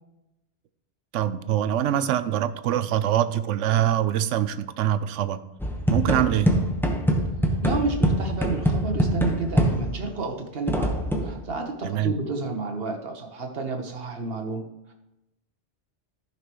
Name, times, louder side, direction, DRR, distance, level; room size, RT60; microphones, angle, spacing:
voice 1, 1.1-5.4 5.9-6.5 11.8-12.1, right 11 dB, 90° right, 13 dB, 0.9 m, -24 dB
sound 1, 5.6-10.1 10.7-11.4, equal, ahead, 1.0 m, -24 dB
voice 2, 7.6-14.6, right 3 dB, 55° right, 3 dB, 1.4 m, -30 dB
14.0 x 5.9 x 3.1 m, 0.92 s
omnidirectional pair, 1.2 m